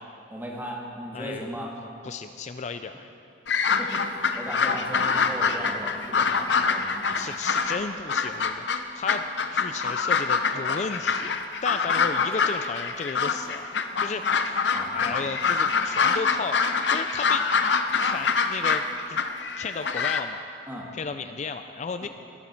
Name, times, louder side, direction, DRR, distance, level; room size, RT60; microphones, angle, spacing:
voice 1, 0.3-1.7 3.8-7.4 14.3-14.4 14.7-15.2 20.7-20.9 22.0-22.1, equal, 10° right, -2 dB, 2.0 m, -37 dB
voice 2, 1.1-1.5 2.0-3.1 7.1-9.3 9.5-11.4 11.6-13.7 14.0-14.6 14.9-16.6 16.9-17.5 18.0-19.2 19.6-20.4 20.9-22.1, left 5 dB, 40° left, 9 dB, 0.4 m, -34 dB
sound 1, 3.5-7.8 8.1-20.2, left 5 dB, 75° left, 0.7 m, -25 dB
19.5 x 11.5 x 4.4 m, 2.6 s
head